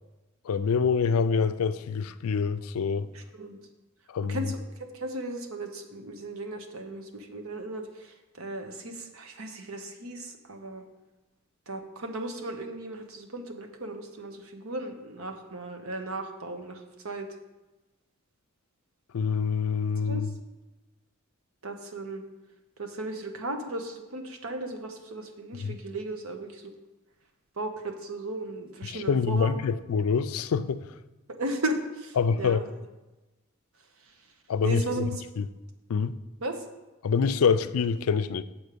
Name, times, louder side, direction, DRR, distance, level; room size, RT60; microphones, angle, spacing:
voice 1, 0.4-3.1 4.1-4.4 19.1-20.3 25.6-25.8 28.8-30.8 32.2-32.6 34.5-35.1 35.4-35.5 35.9-36.2 37.0-38.4, left 5 dB, 85° left, 0.4 m, -26 dB
voice 2, 3.1-3.6 4.3-10.8 11.7-17.3 20.0-20.3 21.6-22.2 22.8-26.7 27.6-29.6 31.4-32.7 34.6-35.1 36.4-36.6, right 1 dB, 75° right, 0.9 m, -36 dB
7.1 x 4.3 x 6.7 m
head